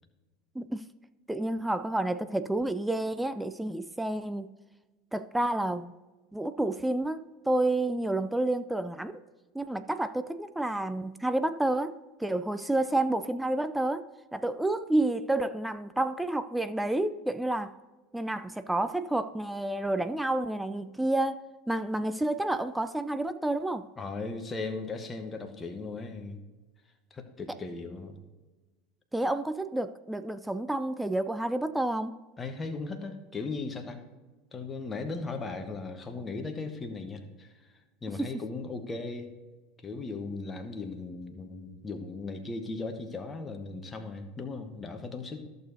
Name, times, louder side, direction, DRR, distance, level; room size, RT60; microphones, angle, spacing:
voice 1, 1.3-4.5 5.1-5.9 6.3-9.2 9.5-17.7 18.1-23.9 29.1-32.1 38.2-38.3, right 1 dB, 5° right, 0.3 m, -30 dB
voice 2, 24.0-26.4 27.1-28.2 32.4-34.0 34.5-37.7 38.0-39.3 39.8-45.5, left 3 dB, 20° left, 1.1 m, -37 dB
14.0 x 6.7 x 2.7 m
figure-of-eight pair, 75°, 0 cm